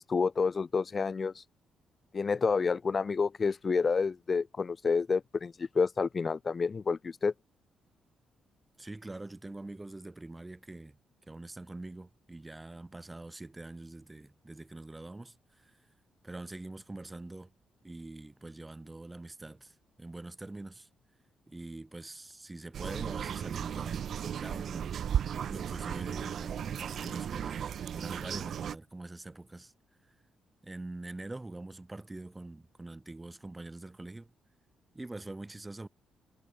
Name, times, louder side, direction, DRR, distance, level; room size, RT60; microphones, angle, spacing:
voice 1, 0.0-1.4 2.1-7.3, left 5 dB, 40° left, 1.6 m, -29 dB
voice 2, 8.8-11.0 11.3-15.8 16.2-17.5 17.8-20.9 21.5-24.9 25.5-29.7 30.6-34.3 34.9-35.9, right 2 dB, 20° right, 6.3 m, -44 dB
sound 1, 22.7-28.7, right 8 dB, 65° right, 1.6 m, -35 dB
hypercardioid pair, 50°, 0 cm